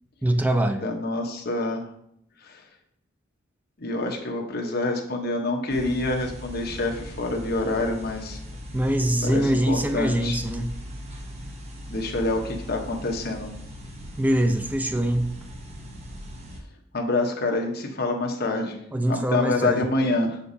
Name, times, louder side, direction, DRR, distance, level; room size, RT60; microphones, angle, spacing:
voice 1, 0.2-0.8 8.7-10.8 14.2-15.4 18.9-20.1, right 1 dB, 10° right, 7 dB, 0.5 m, -24 dB
voice 2, 0.8-1.8 2.4-2.6 3.8-8.4 9.2-10.4 11.9-13.5 16.9-18.8 19.1-20.4, left 2 dB, 55° left, 2 dB, 1.0 m, -26 dB
sound 1, 5.7-16.6, equal, 35° right, 0.9 m, -39 dB
6.6 x 5.9 x 2.7 m, 0.74 s
head